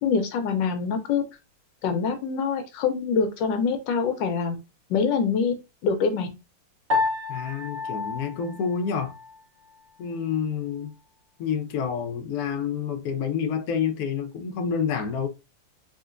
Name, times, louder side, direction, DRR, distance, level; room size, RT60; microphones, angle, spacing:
voice 1, 0.0-1.2 1.8-4.5 4.9-5.5 5.8-6.3, left 5 dB, 90° left, 1.4 m, -24 dB
Piano, 6.9-9.4, left 4 dB, 45° right, 1.2 m, -29 dB
voice 2, 7.3-9.1 10.0-10.9 11.4-15.3, left 7 dB, 70° left, 0.9 m, -28 dB
3.8 x 2.4 x 2.4 m
omnidirectional pair, 2.0 m